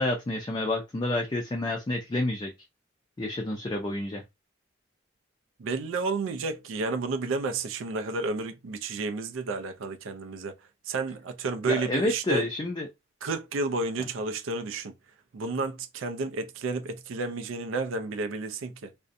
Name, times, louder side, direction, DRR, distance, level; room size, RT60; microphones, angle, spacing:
voice 1, 0.0-2.5 3.2-4.2 11.7-12.9, left 2 dB, 20° left, 0.4 m, -29 dB
voice 2, 5.6-10.5 10.9-12.4 13.2-14.9 15.3-18.9, right 3 dB, 85° right, 0.4 m, -31 dB
2.5 x 2.1 x 2.5 m
head